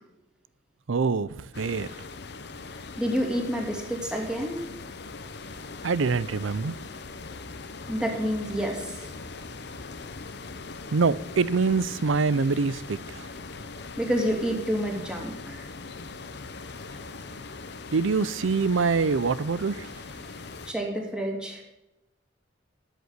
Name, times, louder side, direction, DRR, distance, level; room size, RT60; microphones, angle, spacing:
voice 1, 0.9-1.9 5.8-6.7 10.9-13.3 17.9-19.9, right 4 dB, 90° right, 0.5 m, -25 dB
sound 1, 1.5-20.7, left 3 dB, 60° left, 0.9 m, -41 dB
voice 2, 3.0-4.6 7.9-9.1 14.0-15.7 20.7-21.6, equal, 5° right, 2.5 m, -28 dB
12.5 x 8.1 x 6.6 m
head